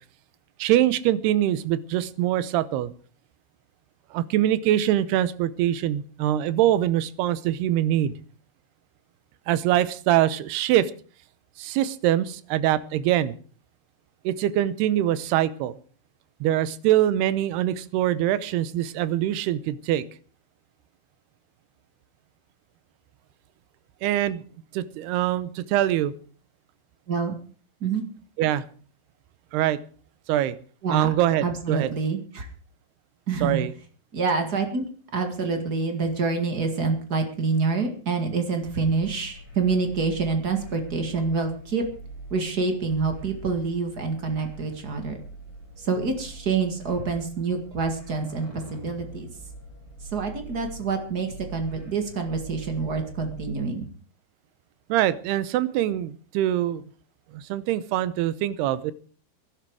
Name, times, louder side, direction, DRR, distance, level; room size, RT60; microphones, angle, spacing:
voice 1, 0.6-2.9 4.1-8.1 9.5-10.9 11.6-13.3 14.2-15.8 16.4-20.0 24.0-24.4 24.7-26.1 28.4-28.6 29.5-29.8 30.3-30.6 30.9-31.9 33.4-33.7 54.9-56.8 57.3-58.9, right 12 dB, 80° right, 16 dB, 2.8 m, -23 dB
voice 2, 31.4-32.5 33.3-33.6 34.1-34.8 35.1-41.8 42.3-45.2 45.8-49.3 50.1-53.9, right 4 dB, 40° right, 5 dB, 1.4 m, -27 dB
sound 1, 38.6-53.5, right 2 dB, 30° left, 6.9 m, -43 dB
19.5 x 11.5 x 4.8 m, 0.42 s
omnidirectional pair, 4.7 m